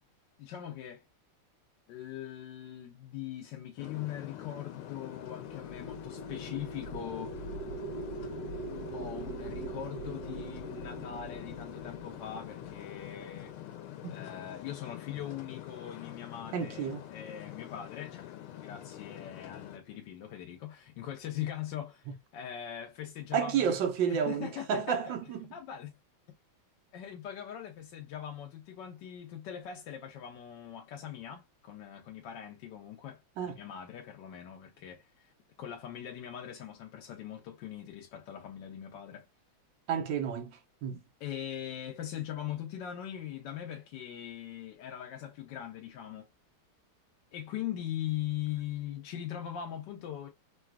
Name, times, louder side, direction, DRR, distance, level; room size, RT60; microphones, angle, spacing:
voice 1, 0.4-1.0 1.9-7.4 8.9-13.6 14.1-23.7 24.1-25.1 25.5-25.9 26.9-33.2 33.5-35.3 35.6-39.3 41.2-46.3 47.3-50.3, left 10 dB, 70° left, 1.2 m, -41 dB
sound 1, 3.8-19.8, left 12 dB, 90° left, 1.5 m, -45 dB
sound 2, 5.2-13.8, right 3 dB, 40° right, 1.8 m, -42 dB
voice 2, 16.5-17.0 23.3-25.5 33.4-33.6 39.9-40.5 40.8-41.0, right 7 dB, 70° right, 1.4 m, -31 dB
3.9 x 2.3 x 2.2 m
omnidirectional pair, 2.3 m